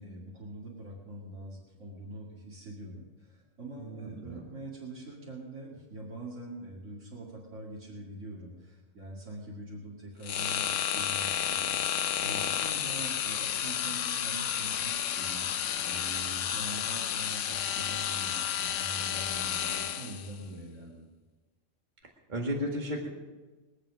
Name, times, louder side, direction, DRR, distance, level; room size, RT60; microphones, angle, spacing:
voice 1, 0.0-21.1, right 1 dB, 90° right, -5 dB, 2.7 m, -44 dB
voice 2, 3.8-4.4 22.3-23.1, equal, 40° right, 0 dB, 2.1 m, -34 dB
sound 1, 10.2-20.3, left 9 dB, 90° left, 1.0 m, -31 dB
22.5 x 7.7 x 6.3 m, 1.3 s
omnidirectional pair, 1.2 m